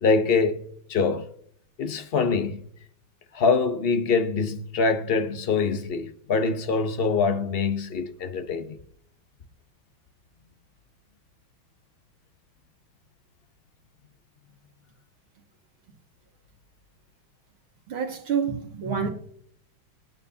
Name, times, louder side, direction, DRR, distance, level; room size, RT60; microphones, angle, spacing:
voice 1, 0.0-1.3 1.8-2.6 3.3-8.8, left 4 dB, 50° left, 0.7 m, -24 dB
voice 2, 17.9-19.1, right 6 dB, 85° right, 2.7 m, -27 dB
24.5 x 9.2 x 2.8 m
omnidirectional pair, 2.2 m